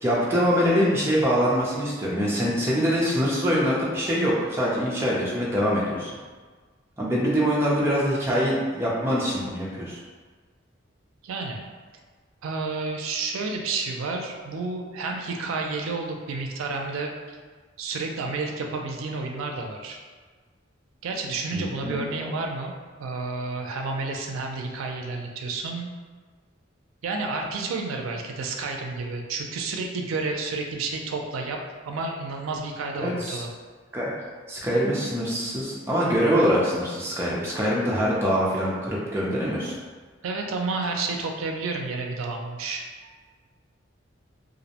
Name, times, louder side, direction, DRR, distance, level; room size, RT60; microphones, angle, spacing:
voice 1, 0.0-6.1 7.0-10.0 21.5-22.3 33.0-33.4 33.9-34.1 34.5-39.7, equal, 10° right, -6 dB, 0.4 m, -24 dB
voice 2, 11.2-11.6 12.4-17.4 17.8-20.0 21.0-22.7 23.0-25.9 27.0-31.6 31.8-33.5 40.2-43.1, right 3 dB, 90° right, 2 dB, 0.4 m, -30 dB
2.5 x 2.0 x 2.7 m, 1.4 s
head